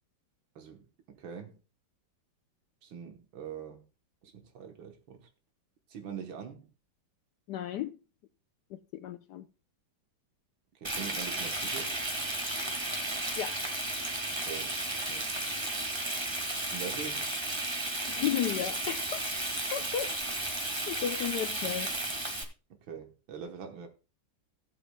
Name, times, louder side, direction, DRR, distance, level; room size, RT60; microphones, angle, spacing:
voice 1, 1.2-1.6 2.8-3.8 4.2-5.2 5.9-6.7 10.8-12.0 14.3-15.4 16.6-17.3 22.9-23.9, right 7 dB, 85° right, 2.0 m, -43 dB
voice 2, 7.5-8.0 8.7-9.4 13.4-13.6 18.0-19.2 19.7-20.1 20.9-21.9, left 10 dB, 70° left, 1.1 m, -33 dB
Frying (food), 10.8-22.4, right 1 dB, 15° right, 1.4 m, -34 dB
17.0 x 8.1 x 2.3 m
omnidirectional pair, 2.1 m